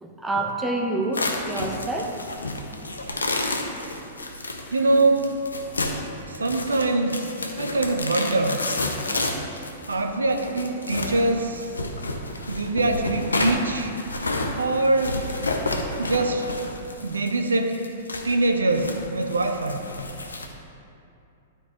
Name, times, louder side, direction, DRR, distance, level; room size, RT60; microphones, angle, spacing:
voice 1, 0.0-2.1, right 2 dB, 10° right, 1 dB, 0.8 m, -27 dB
sound 1, 1.1-20.4, left 2 dB, 80° left, 0.7 m, -30 dB
voice 2, 4.7-5.3 6.3-7.3 7.6-8.6 9.9-11.7 12.5-13.9 14.6-15.2 16.0-16.5 17.0-17.8 18.2-19.8, right 2 dB, 80° right, 4 dB, 0.6 m, -23 dB
12.0 x 4.6 x 2.9 m, 2.6 s
figure-of-eight pair, 105°, 0 cm